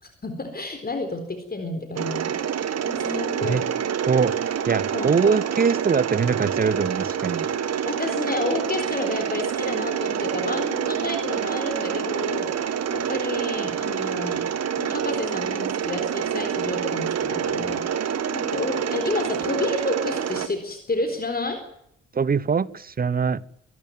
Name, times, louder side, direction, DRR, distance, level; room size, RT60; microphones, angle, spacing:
voice 1, 0.0-3.6 4.9-5.4 7.8-14.4 14.8-21.6, left 2 dB, 25° left, 6 dB, 4.1 m, -30 dB
Mechanisms, 2.0-20.5, right 8 dB, 45° right, 1.8 m, -27 dB
voice 2, 4.0-7.5 22.1-23.4, right 6 dB, 25° right, 23 dB, 1.0 m, -23 dB
25.0 x 12.0 x 9.4 m, 0.73 s
figure-of-eight pair, 40°, 36 cm